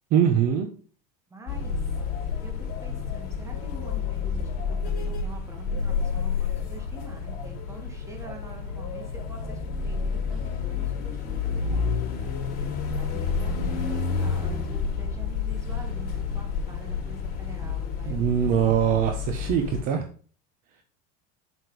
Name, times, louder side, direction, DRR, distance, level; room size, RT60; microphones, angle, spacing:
voice 1, 0.1-0.7 18.0-20.0, right 9 dB, 45° right, 6 dB, 1.0 m, -22 dB
voice 2, 1.3-1.8 2.4-11.9 13.0-19.0, right 2 dB, 15° right, 3 dB, 1.9 m, -45 dB
sound 1, 1.5-19.8, left 5 dB, 45° left, 3.3 m, -30 dB
8.1 x 6.6 x 3.4 m, 0.41 s
supercardioid pair, 155°, 20 cm